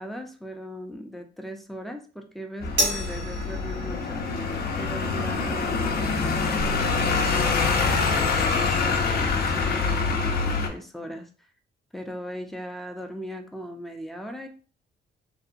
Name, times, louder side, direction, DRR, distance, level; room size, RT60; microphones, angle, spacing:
voice 1, 0.0-4.2 4.8-11.5 11.9-14.5, equal, ahead, 4 dB, 0.4 m, -38 dB
sound 1, 2.6-10.7, left 4 dB, 50° left, 0.5 m, -25 dB
sound 2, 2.8-9.3, equal, 75° right, 1.0 m, -35 dB
2.6 x 2.1 x 2.5 m, 0.39 s
cardioid pair, 90°, 20 cm